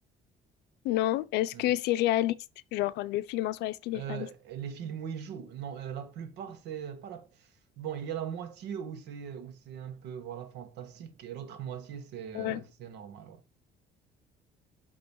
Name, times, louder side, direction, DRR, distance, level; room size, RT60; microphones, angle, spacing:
voice 1, 0.8-2.3 2.7-4.3 12.3-12.6, left 14 dB, 90° left, 0.5 m, -29 dB
voice 2, 3.9-7.5 7.8-13.4, right 8 dB, 85° right, 1.4 m, -40 dB
8.6 x 3.0 x 4.6 m
cardioid pair, 110°, 17 cm